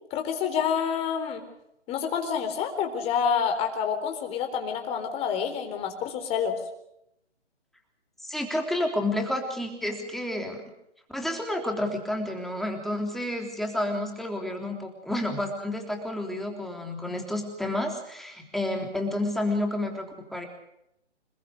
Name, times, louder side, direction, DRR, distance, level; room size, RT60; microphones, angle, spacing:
voice 1, 0.1-1.4 1.9-6.5, left 7 dB, 15° left, 5 dB, 4.0 m, -28 dB
voice 2, 8.2-10.6 11.1-20.5, left 1 dB, ahead, 2 dB, 3.4 m, -30 dB
28.0 x 20.0 x 6.7 m, 0.80 s
figure-of-eight pair, 140°, 35 cm